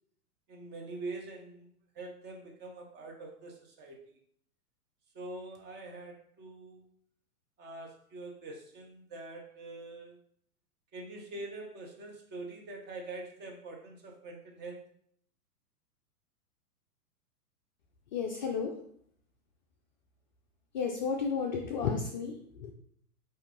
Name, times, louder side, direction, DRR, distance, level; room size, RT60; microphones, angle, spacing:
voice 1, 0.5-1.7 1.9-4.0 5.1-6.9 7.6-10.2 10.9-14.9, right 2 dB, 25° right, 1 dB, 0.9 m, -44 dB
voice 2, 18.1-18.8 20.7-22.7, left 5 dB, 35° left, 1 dB, 0.4 m, -33 dB
4.9 x 2.7 x 3.7 m, 0.64 s
hypercardioid pair, 120°, 46 cm